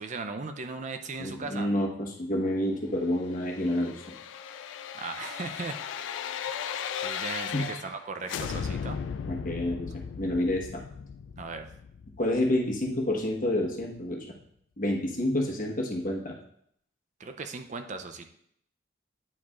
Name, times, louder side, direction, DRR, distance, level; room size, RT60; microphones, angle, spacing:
voice 1, 0.0-1.7 4.9-5.8 7.0-9.0 11.4-11.7 17.2-18.3, right 4 dB, 40° right, 7 dB, 0.5 m, -37 dB
voice 2, 1.2-3.9 7.5-7.7 9.3-10.8 12.2-14.3 14.8-16.3, left 1 dB, 50° left, 0 dB, 1.2 m, -29 dB
sound 1, 3.3-8.0 8.3-13.1 13.5-13.6, left 7 dB, 90° left, 0.3 m, -37 dB
9.3 x 4.8 x 2.4 m, 0.69 s
head